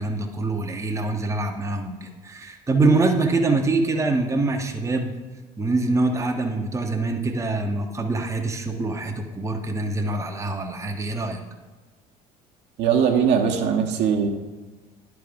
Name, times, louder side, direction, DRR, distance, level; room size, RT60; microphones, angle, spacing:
voice 1, 0.0-5.1 5.6-11.4, right 3 dB, 15° right, 3 dB, 0.7 m, -24 dB
voice 2, 12.8-14.3, right 7 dB, 60° right, 2 dB, 1.0 m, -20 dB
10.0 x 3.6 x 5.0 m, 1.3 s
hypercardioid pair, 60°, 21 cm